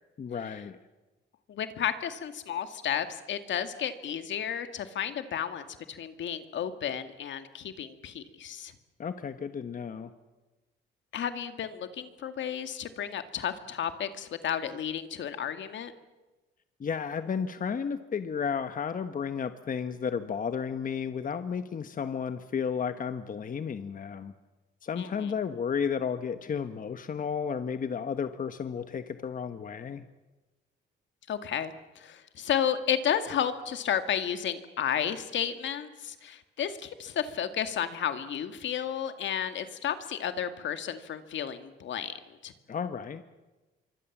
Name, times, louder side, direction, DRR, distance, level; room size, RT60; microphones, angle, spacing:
voice 1, 0.2-0.8 9.0-10.1 16.8-24.3 24.8-30.0 42.7-43.2, left 6 dB, 45° left, 10 dB, 1.3 m, -33 dB
voice 2, 1.5-8.7 11.1-15.9 25.0-25.3 31.3-42.1 42.4-42.5, left 9 dB, 70° left, 9 dB, 2.2 m, -32 dB
26.0 x 24.0 x 7.4 m, 1.1 s
cardioid pair, 90°, 20 cm